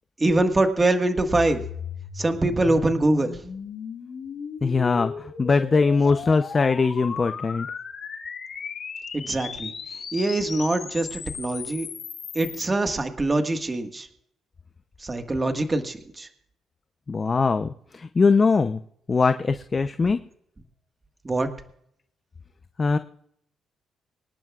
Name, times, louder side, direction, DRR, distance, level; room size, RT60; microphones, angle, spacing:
voice 1, 0.2-1.6 2.1-3.4 9.1-9.7 10.1-11.9 12.3-14.1 15.0-16.3 21.2-21.5, right 2 dB, 25° right, 6 dB, 1.6 m, -23 dB
sound 1, 1.3-12.6, left 6 dB, 55° left, 3.7 m, -36 dB
voice 2, 4.6-7.7 17.1-18.8 19.1-20.2 22.8-23.0, left 4 dB, 35° left, 9 dB, 0.6 m, -21 dB
25.5 x 11.0 x 2.4 m, 0.69 s
cardioid pair, 90°, 0 cm